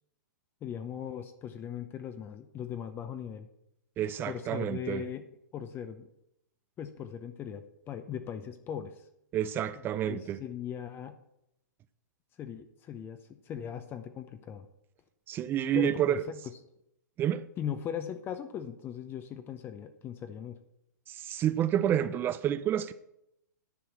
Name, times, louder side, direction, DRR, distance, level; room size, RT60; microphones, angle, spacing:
voice 1, 0.6-3.5 4.3-5.2 5.5-6.1 6.8-9.1 10.1-11.2 12.4-13.2 13.4-14.7 15.7-16.4 17.6-20.6, left 8 dB, 20° left, 0.6 m, -39 dB
voice 2, 4.0-5.0 9.3-10.4 15.3-16.2 17.2-17.5 21.1-22.9, right 10 dB, 20° right, 0.4 m, -29 dB
10.5 x 4.6 x 7.2 m
hypercardioid pair, 130°, 10 cm